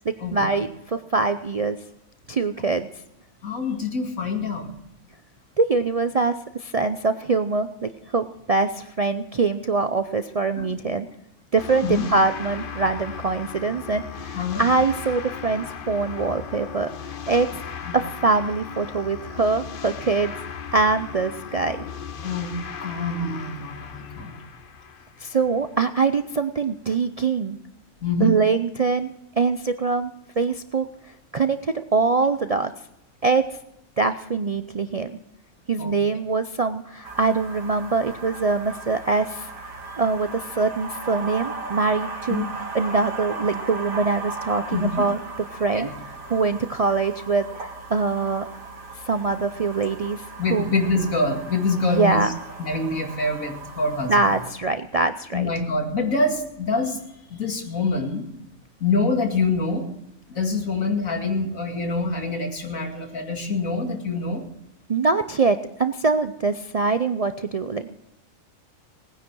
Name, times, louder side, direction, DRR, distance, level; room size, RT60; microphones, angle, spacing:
voice 1, 0.1-1.8 2.3-2.9 5.6-11.1 11.5-17.5 17.9-20.3 20.7-21.8 25.2-27.6 28.2-29.1 29.4-30.9 31.3-32.7 33.2-33.4 34.0-35.2 35.7-39.5 40.0-42.4 42.7-45.2 45.5-45.9 46.3-48.4 49.1-50.2 50.5-50.7 51.8-52.3 54.1-55.5 64.9-68.0, right 4 dB, 50° right, 9 dB, 0.4 m, -23 dB
voice 2, 3.4-4.7 10.6-10.7 11.8-12.1 14.3-14.6 17.8-18.0 22.2-22.5 22.8-24.3 28.0-28.4 35.8-35.9 42.3-42.5 44.7-45.1 45.7-45.9 50.4-52.3 52.6-54.3 55.3-57.0 57.3-58.3 58.8-59.9 60.3-64.4, left 3 dB, 85° left, 3 dB, 2.7 m, -25 dB
sound 1, 11.6-25.9, left 7 dB, 45° left, 0.9 m, -37 dB
sound 2, 37.0-54.5, right 3 dB, 85° right, 2.5 m, -37 dB
19.0 x 10.0 x 6.2 m, 0.81 s
omnidirectional pair, 1.4 m